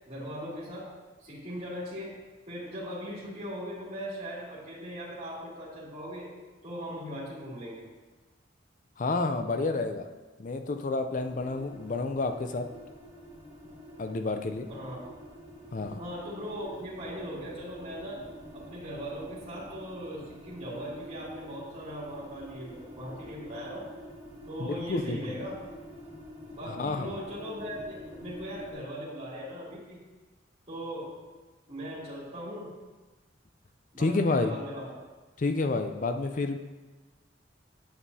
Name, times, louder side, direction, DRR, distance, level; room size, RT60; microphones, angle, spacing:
voice 1, 0.1-0.9 1.2-2.1 2.5-6.3 6.6-7.8 14.7-15.0 16.0-18.2 18.5-23.9 24.5-25.6 26.5-30.0 30.7-31.2 31.7-32.7 33.9-34.9, equal, 35° right, -8 dB, 2.3 m, -39 dB
voice 2, 9.0-10.1 10.4-12.7 14.0-14.7 15.7-16.0 24.6-25.4 26.6-27.1 34.0-34.5 35.4-36.6, left 3 dB, 40° left, 7 dB, 0.5 m, -29 dB
sound 1, 11.1-28.7, equal, 15° right, 1.9 m, -48 dB
8.7 x 7.2 x 2.7 m, 1.2 s
head